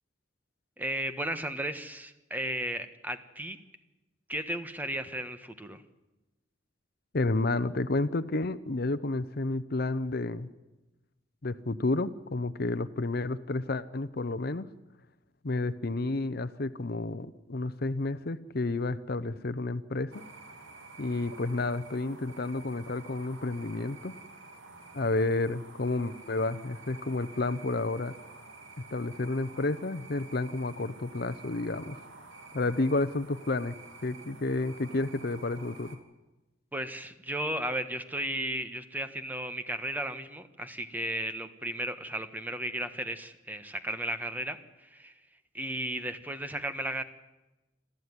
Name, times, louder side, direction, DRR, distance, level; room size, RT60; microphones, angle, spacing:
voice 1, 0.8-3.6 4.3-5.8 36.7-45.1 45.5-47.0, right 1 dB, 10° right, 9 dB, 1.3 m, -34 dB
voice 2, 7.1-10.5 11.4-14.7 15.4-20.2 21.0-24.1 24.9-28.2 28.9-32.0 32.5-33.7 34.0-36.0, left 2 dB, 50° left, 14 dB, 0.8 m, -31 dB
sound 1, 20.1-36.0, right 3 dB, 85° right, 3.0 m, -49 dB
26.5 x 14.5 x 9.7 m, 1.1 s
head